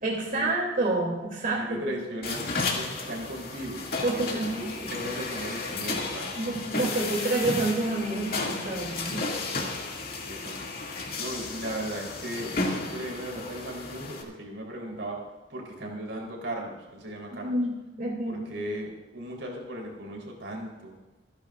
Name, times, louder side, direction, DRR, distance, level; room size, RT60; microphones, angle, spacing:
voice 1, 0.0-1.8 4.0-4.9 6.4-9.2 17.3-18.4, right 2 dB, 50° right, -2 dB, 3.0 m, -28 dB
voice 2, 1.6-6.4 10.3-10.6 11.1-15.2 15.5-17.5 18.3-21.0, right 1 dB, 80° right, -1 dB, 3.9 m, -37 dB
sound 1, 2.2-14.2, left 3 dB, 55° left, 2.5 m, -33 dB
27.5 x 10.5 x 2.6 m, 1.2 s
head